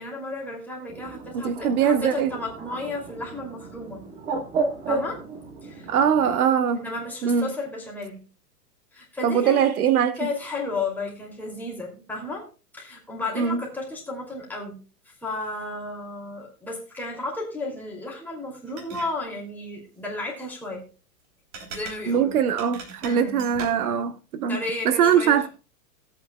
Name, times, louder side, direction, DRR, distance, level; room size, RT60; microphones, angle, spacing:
voice 1, 0.0-4.0 4.9-5.2 5.6-5.9 6.7-8.2 8.9-9.6 10.2-12.5 12.7-14.8 15.0-20.8 21.7-22.3 23.0-23.5 24.5-25.5, left 2 dB, 5° left, 2.6 m, -33 dB
Bird, 0.9-6.4, right 4 dB, 15° right, 0.9 m, -33 dB
voice 2, 1.3-2.3 5.9-6.8 7.2-7.5 9.2-10.3 13.4-13.6 22.1-25.5, right 8 dB, 65° right, 1.0 m, -22 dB
sound 1, 18.7-19.1 21.5-23.9, right 4 dB, 40° right, 3.3 m, -40 dB
18.0 x 8.2 x 2.2 m
hypercardioid pair, 160°, 47 cm